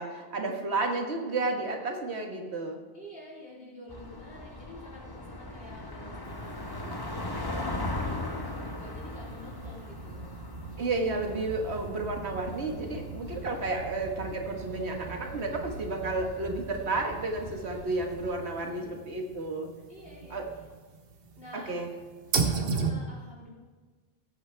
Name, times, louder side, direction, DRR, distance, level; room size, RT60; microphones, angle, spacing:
voice 1, 0.0-2.8 10.8-19.7 20.3-20.4 21.5-21.9, right 3 dB, 85° right, 2 dB, 1.7 m, -32 dB
voice 2, 2.9-10.3 18.4-18.9 19.9-20.4 21.4-21.7 22.4-23.5, left 1 dB, 65° left, -5 dB, 3.5 m, -49 dB
sound 1, 3.9-18.4, left 2 dB, 25° left, 1.0 m, -40 dB
sound 2, 6.2-22.9, right 4 dB, 65° right, 1.2 m, -38 dB
17.0 x 8.8 x 3.4 m, 1.4 s
omnidirectional pair, 1.1 m